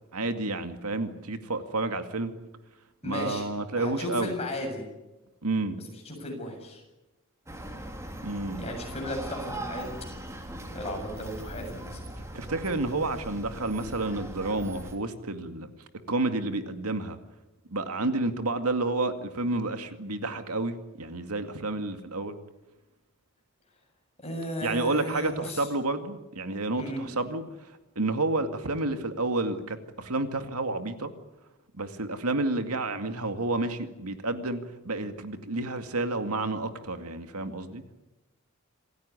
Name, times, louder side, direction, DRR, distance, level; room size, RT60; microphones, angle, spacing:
voice 1, 0.1-2.3 3.0-4.3 5.4-5.8 8.2-8.6 12.3-15.7 16.1-17.2 17.7-22.4 24.6-31.1 31.8-37.8, right 2 dB, 90° right, 2.3 m, -30 dB
voice 2, 3.0-3.5 3.8-4.8 6.0-6.8 8.6-9.9 10.7-12.0 24.2-25.7 26.8-27.1, left 1 dB, 30° left, 7.5 m, -35 dB
sound 1, 7.5-15.0, right 1 dB, 15° right, 3.0 m, -40 dB
27.5 x 16.0 x 9.8 m
head